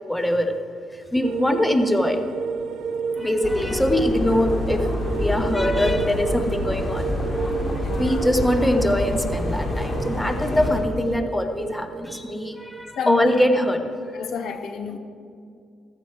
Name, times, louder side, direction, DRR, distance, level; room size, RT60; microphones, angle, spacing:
voice 1, 0.1-0.5 1.1-2.2 3.2-4.9 5.1-7.1 8.0-13.8, left 1 dB, 10° left, 6 dB, 1.2 m, -22 dB
sound 1, 1.2-12.9, right 6 dB, 80° right, 0.7 m, -32 dB
voice 2, 3.2-3.5 7.6-8.3 13.0-13.4 14.1-15.0, left 7 dB, 70° left, 8 dB, 1.1 m, -31 dB
sound 2, 3.4-10.8, left 1 dB, 35° left, 3.3 m, -27 dB
15.5 x 14.0 x 4.8 m, 2.3 s
cardioid pair, 90°, 0 cm